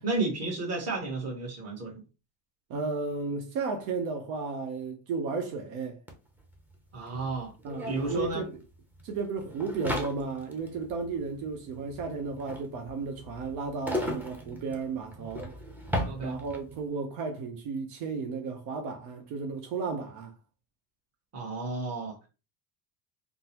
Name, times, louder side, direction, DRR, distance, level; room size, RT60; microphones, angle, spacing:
voice 1, 0.0-2.0 6.9-7.5 7.9-8.4 16.0-16.4 21.3-22.3, right 3 dB, 30° right, 1.3 m, -32 dB
voice 2, 2.7-6.0 7.6-8.6 9.0-15.5 16.2-20.3, right 4 dB, 75° right, 0.8 m, -34 dB
sound 1, 6.1-6.2 6.4-16.8, equal, 5° right, 0.5 m, -37 dB
3.6 x 2.0 x 2.9 m
cardioid pair, 130°, 49 cm